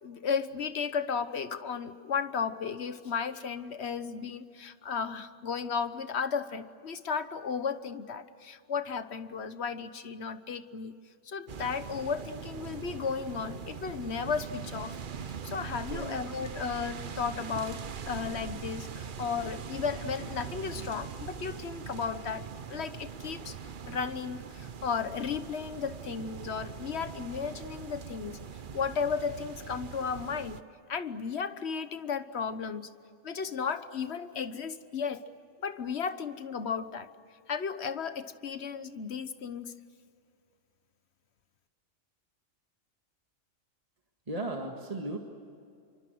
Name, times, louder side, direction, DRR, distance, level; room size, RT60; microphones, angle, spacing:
voice 1, 0.0-10.9 11.3-15.0 15.4-23.6 23.9-28.4 28.7-30.6 30.9-32.9 33.2-35.2 35.6-37.1 37.5-39.7, left 6 dB, 55° left, 11 dB, 1.3 m, -34 dB
sound 1, 11.5-30.6, right 7 dB, 45° right, 0.9 m, -42 dB
voice 2, 15.9-16.3 44.3-45.2, right 2 dB, 30° right, 2 dB, 1.9 m, -36 dB
27.5 x 24.5 x 7.9 m, 2.4 s
omnidirectional pair, 1.3 m